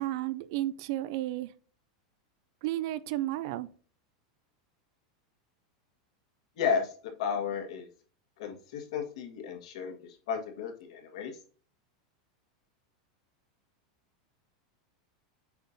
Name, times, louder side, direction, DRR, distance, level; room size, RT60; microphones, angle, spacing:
voice 1, 0.0-1.5 2.6-3.7, right 15 dB, 45° right, 0.4 m, -32 dB
voice 2, 6.6-6.9 7.2-7.9 8.4-11.4, left 6 dB, 60° left, 1.6 m, -33 dB
7.7 x 5.4 x 2.7 m
supercardioid pair, 180°, 4 cm